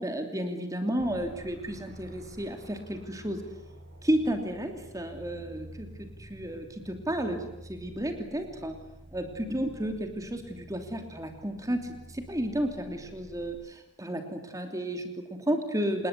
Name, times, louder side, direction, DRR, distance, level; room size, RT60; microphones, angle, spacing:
voice 1, 0.0-3.4 4.0-8.7 9.1-16.1, right 1 dB, 15° right, 5 dB, 2.9 m, -32 dB
sound 1, 1.0-13.5, right 1 dB, 45° right, 7.0 m, -49 dB
28.0 x 20.5 x 8.2 m, 0.90 s
head